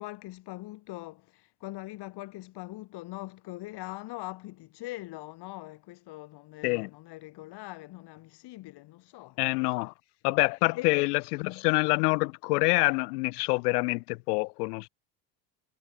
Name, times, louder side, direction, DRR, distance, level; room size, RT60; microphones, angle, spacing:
voice 1, 0.0-9.9 10.7-11.1 11.4-11.7, left 18 dB, 60° left, 4.3 m, -42 dB
voice 2, 9.4-9.9 10.2-14.9, left 26 dB, 85° left, 2.6 m, -26 dB
supercardioid pair, 115°, 45 cm